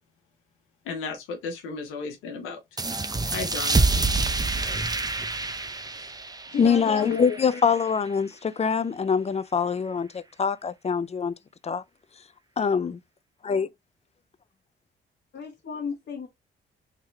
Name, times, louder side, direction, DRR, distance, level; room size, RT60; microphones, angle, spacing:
voice 1, 0.8-2.6 3.3-3.8, left 4 dB, 90° left, 1.1 m, -34 dB
sound 1, 2.8-8.0, right 3 dB, 20° right, 0.6 m, -27 dB
voice 2, 5.9-7.6 15.3-16.3, left 6 dB, 60° left, 1.2 m, -33 dB
voice 3, 6.6-11.3 11.6-11.8 12.6-13.0 13.4-13.7, left 6 dB, 30° left, 0.4 m, -24 dB
3.6 x 2.9 x 3.2 m
supercardioid pair, 55°, 21 cm